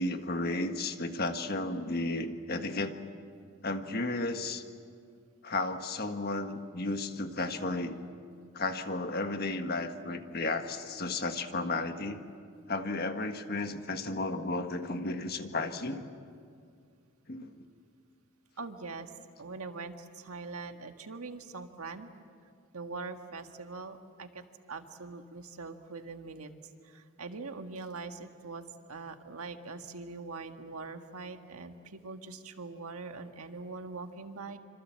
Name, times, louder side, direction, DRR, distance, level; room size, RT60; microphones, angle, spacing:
voice 1, 0.0-2.9 3.6-4.6 5.4-8.0 8.5-12.2 12.7-16.0 17.3-17.5, left 2 dB, 45° left, 7 dB, 1.5 m, -33 dB
voice 2, 18.6-19.1 19.4-22.1 22.7-26.5 26.8-28.6 28.9-34.6, right 3 dB, 85° right, 6 dB, 1.7 m, -42 dB
26.5 x 26.0 x 7.6 m, 2.2 s
head